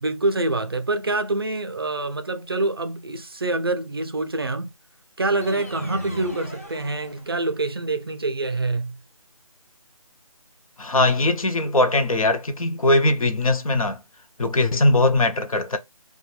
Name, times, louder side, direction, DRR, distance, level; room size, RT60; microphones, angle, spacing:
voice 1, 0.0-4.7 5.2-9.0, right 2 dB, 40° right, 0.4 m, -26 dB
sound 1, 5.4-7.7, equal, 25° left, 0.4 m, -39 dB
voice 2, 10.8-14.0 14.4-15.8, left 2 dB, 70° left, 0.6 m, -20 dB
2.4 x 2.1 x 3.0 m
figure-of-eight pair, 170°, 18 cm